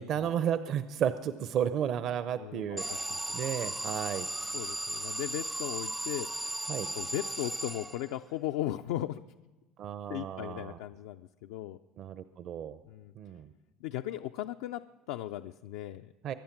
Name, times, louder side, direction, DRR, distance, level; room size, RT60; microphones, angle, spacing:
voice 1, 0.0-2.8 3.3-4.3 6.7-6.9 9.8-10.8 12.0-12.8 13.2-13.5 16.2-16.3, right 9 dB, 55° right, 12 dB, 0.7 m, -33 dB
voice 2, 2.4-3.2 4.5-6.7 7.0-9.2 10.1-11.8 12.9-13.1 13.8-16.1, left 13 dB, 80° left, 8 dB, 0.4 m, -37 dB
Alarm, 2.8-8.3, right 1 dB, 10° right, 0.4 m, -36 dB
24.5 x 8.7 x 5.9 m, 1.2 s
supercardioid pair, 90°, 0 cm